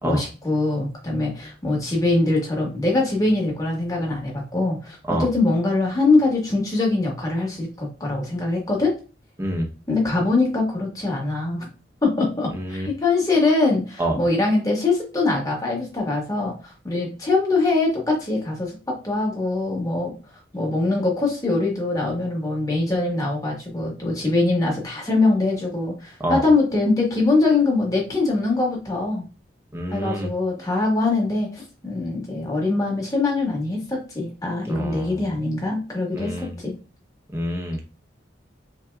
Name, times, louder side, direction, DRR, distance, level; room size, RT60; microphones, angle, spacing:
voice 1, 0.0-8.9 9.9-11.6 12.0-20.1 20.5-29.2 29.9-36.7, left 3 dB, 20° left, -2 dB, 1.4 m, -23 dB
voice 2, 9.4-9.7 12.5-12.9 14.0-14.2 26.2-26.4 29.7-30.3 34.6-35.2 36.1-36.5 37.3-37.8, right 1 dB, 15° right, 1 dB, 0.8 m, -27 dB
5.6 x 2.9 x 2.3 m, 0.33 s
head